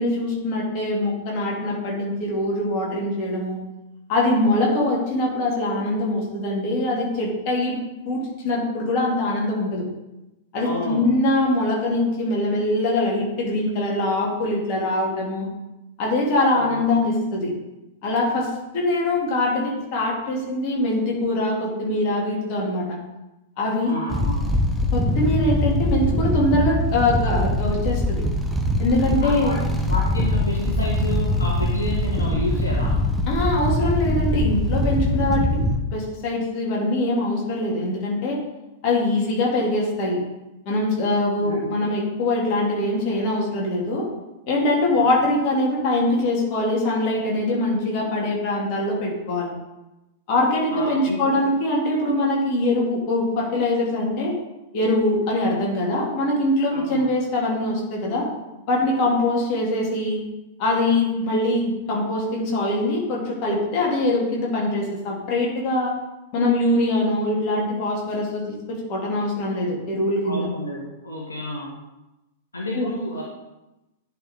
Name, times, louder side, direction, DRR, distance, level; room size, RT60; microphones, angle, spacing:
voice 1, 0.0-3.6 4.1-7.8 8.0-9.8 10.5-15.5 16.0-17.5 18.0-23.0 23.6-23.9 24.9-28.2 28.8-29.5 33.3-35.6 35.9-38.4 38.8-40.2 40.7-44.1 44.5-49.5 50.3-54.3 54.7-58.3 58.7-60.2 60.6-65.9 66.3-70.5 72.7-72.9, left 1 dB, 40° left, -3 dB, 2.6 m, -23 dB
voice 2, 10.6-11.1 16.5-16.9 23.8-24.5 29.2-33.0 41.3-41.7 44.9-45.0 50.7-51.3 56.7-57.0 70.2-71.7 72.5-73.2, left 1 dB, 75° left, -4 dB, 1.5 m, -30 dB
sound 1, 24.1-35.8, left 1 dB, ahead, 0.9 m, -22 dB
10.5 x 4.7 x 3.7 m, 0.99 s
figure-of-eight pair, 100°, 0 cm